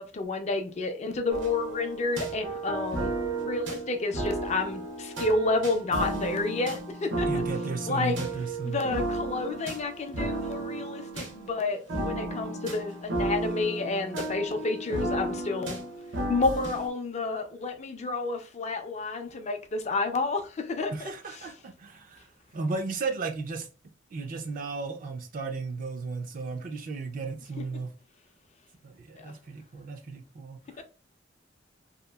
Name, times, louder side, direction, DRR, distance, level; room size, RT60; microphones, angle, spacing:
voice 1, 0.0-3.1 3.4-7.3 7.9-8.2 8.6-15.8 16.3-21.1 30.8-30.9, left 3 dB, 40° left, 0.4 m, -30 dB
sound 1, 1.3-16.9, right 2 dB, 75° right, 0.7 m, -33 dB
voice 2, 7.2-8.8 20.9-22.3 22.5-23.7 24.1-27.9 28.8-30.8, right 4 dB, 45° right, 0.4 m, -34 dB
2.8 x 2.3 x 2.2 m
head